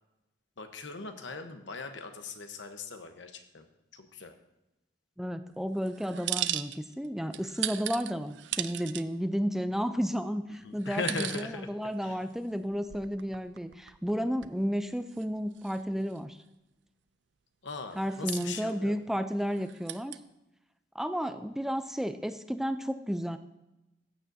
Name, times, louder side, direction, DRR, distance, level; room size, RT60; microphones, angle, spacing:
voice 1, 0.6-3.6 3.9-4.3 10.6-11.7 12.0-12.2 17.6-19.0, left 4 dB, 80° left, 7 dB, 1.0 m, -39 dB
voice 2, 5.2-16.4 18.0-20.2 20.9-23.4, equal, ahead, 10 dB, 0.4 m, -32 dB
sound 1, 5.8-7.1 7.3-9.0 9.7-9.8 10.8-11.4 11.8-11.9 12.6-14.1 14.4-14.5 15.1-15.2 15.6-16.2 18.0-18.7 19.5-20.2, right 13 dB, 75° right, 0.4 m, -37 dB
14.5 x 9.2 x 2.7 m, 0.96 s
head